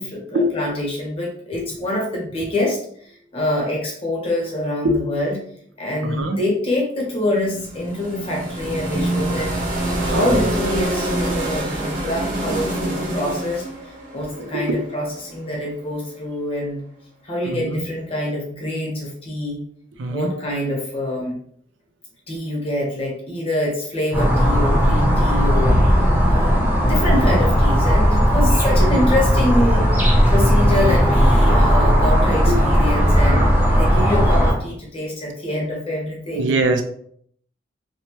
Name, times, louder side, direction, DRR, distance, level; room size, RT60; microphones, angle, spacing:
voice 1, 0.0-5.4 5.8-9.7 10.0-16.8 17.2-19.6 20.1-21.4 22.3-26.0 26.3-36.5, left 1 dB, 30° left, -3 dB, 0.9 m, -25 dB
voice 2, 6.0-6.4 9.9-10.5 13.2-13.3 14.3-14.8 17.5-17.8 20.0-20.3 32.6-32.9 36.4-36.8, right 1 dB, 70° right, 6 dB, 0.4 m, -23 dB
sound 1, 7.3-15.3, right 1 dB, 45° right, 0.8 m, -26 dB
sound 2, 24.1-34.5, equal, 10° right, 0.7 m, -16 dB
2.8 x 2.1 x 3.0 m, 0.64 s
head